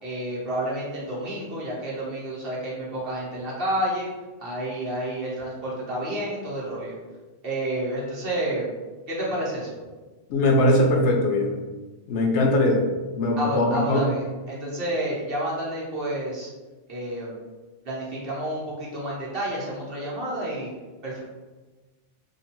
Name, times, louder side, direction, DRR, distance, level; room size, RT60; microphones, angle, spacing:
voice 1, 0.0-4.1 4.4-7.0 7.4-8.7 9.1-9.7 13.4-16.5 16.9-17.3 17.8-20.7 21.0-21.2, right 1 dB, 50° right, -5 dB, 1.2 m, -30 dB
voice 2, 10.3-11.5 12.1-12.9 13.2-14.0, left 1 dB, 70° left, 1 dB, 0.9 m, -21 dB
2.8 x 2.6 x 4.3 m, 1.3 s
omnidirectional pair, 1.2 m